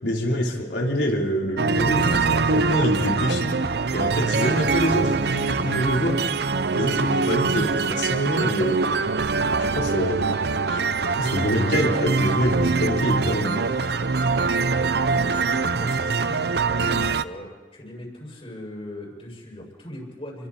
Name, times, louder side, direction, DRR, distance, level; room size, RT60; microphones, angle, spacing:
voice 1, 0.0-3.5 3.9-6.2 6.7-8.8 9.6-10.4 10.7-10.8 11.2-13.6, equal, 75° left, -1 dB, 4.1 m, -25 dB
sound 1, 1.6-17.2, right 4 dB, 65° right, 0.7 m, -23 dB
voice 2, 4.0-4.5 10.1-10.9 15.1-20.5, left 1 dB, 35° left, -1 dB, 6.3 m, -40 dB
30.0 x 23.0 x 4.4 m, 1.3 s
head